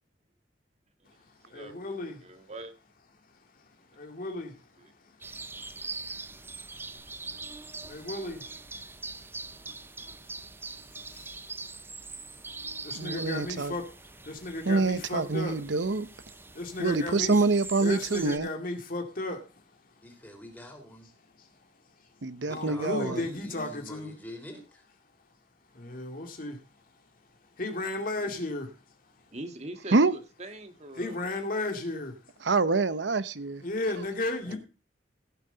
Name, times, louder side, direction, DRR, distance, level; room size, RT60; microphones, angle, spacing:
voice 1, 1.5-2.3 3.9-5.1 6.3-7.5 7.9-8.5 9.1-9.2 10.9-11.4 12.7-13.9 14.2-15.6 16.5-17.3 17.8-19.6 21.4-21.5 22.5-24.1 25.7-26.6 27.6-28.8 30.9-32.2 33.6-34.6, left 2 dB, 50° left, 2.3 m, -35 dB
voice 2, 2.2-2.7 4.8-4.9 29.3-31.2, right 2 dB, 40° right, 1.8 m, -42 dB
sound 1, 5.2-18.4, right 3 dB, 15° right, 0.5 m, -43 dB
voice 3, 12.9-13.7 14.7-16.1 16.8-18.5 22.2-23.2 29.9-30.1 32.4-33.6, right 3 dB, 80° right, 0.8 m, -26 dB
voice 4, 20.0-21.1 22.5-24.8 34.4-34.6, equal, 10° left, 3.9 m, -44 dB
17.0 x 7.5 x 3.9 m
head